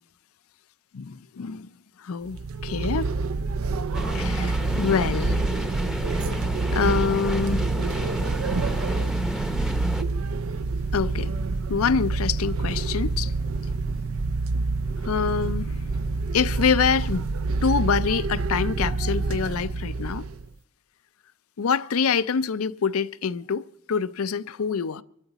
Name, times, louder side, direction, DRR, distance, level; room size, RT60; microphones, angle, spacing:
voice 1, 0.9-1.7 2.0-3.1 4.1-5.4 6.7-7.7 10.9-11.3 11.7-13.3 15.0-15.8 16.3-17.3 17.6-20.2 21.6-25.0, left 6 dB, 85° left, 0.5 m, -26 dB
sound 1, 2.2-20.5, right 3 dB, 80° right, 0.5 m, -27 dB
sound 2, 3.9-10.0, equal, ahead, 0.7 m, -31 dB
24.0 x 12.5 x 4.1 m
head